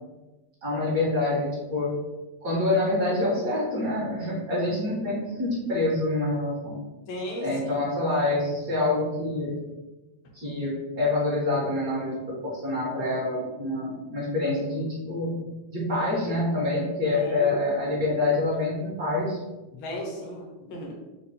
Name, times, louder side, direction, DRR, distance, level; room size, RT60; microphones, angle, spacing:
voice 1, 0.6-1.9 2.4-6.8 7.4-9.5 10.3-15.3 15.7-19.4, left 2 dB, 45° right, -6 dB, 1.9 m, -26 dB
voice 2, 7.1-7.5 17.2-17.6 19.7-20.9, left 1 dB, 85° left, 0 dB, 1.8 m, -35 dB
5.2 x 2.3 x 4.3 m, 1.1 s
omnidirectional pair, 2.2 m